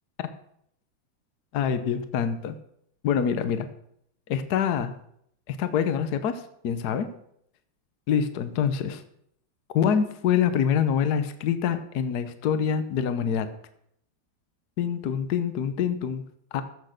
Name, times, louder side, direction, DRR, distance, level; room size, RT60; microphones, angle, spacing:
voice 1, 1.5-2.6 3.0-3.7 4.3-4.9 5.5-7.1 8.1-9.0 9.7-13.5 14.8-16.2 16.5-16.6, left 8 dB, 65° left, 11 dB, 1.3 m, -25 dB
14.5 x 6.3 x 6.5 m, 0.71 s
omnidirectional pair, 2.0 m